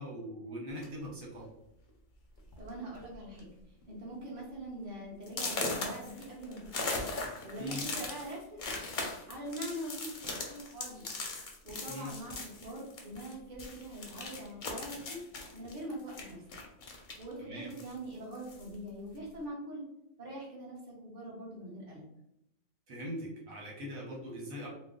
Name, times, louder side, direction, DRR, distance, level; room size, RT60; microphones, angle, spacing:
voice 1, 0.0-1.5 7.6-7.8 11.9-12.1 17.4-17.7 22.9-24.7, equal, 80° right, -3 dB, 1.4 m, -41 dB
sound 1, 0.7-1.1 1.9-2.0 2.4-2.6 2.9-3.4 3.8-3.9 4.4-4.5 5.3-13.3 13.6-17.3 17.7-18.7, left 3 dB, 50° left, 0.6 m, -39 dB
voice 2, 2.6-3.5 3.9-6.9 7.4-8.6 9.2-11.2 11.6-15.2 15.5-16.4 17.2-19.8 20.2-22.0, right 1 dB, 35° right, -5 dB, 1.1 m, -43 dB
3.1 x 2.1 x 3.7 m, 0.82 s
omnidirectional pair, 1.4 m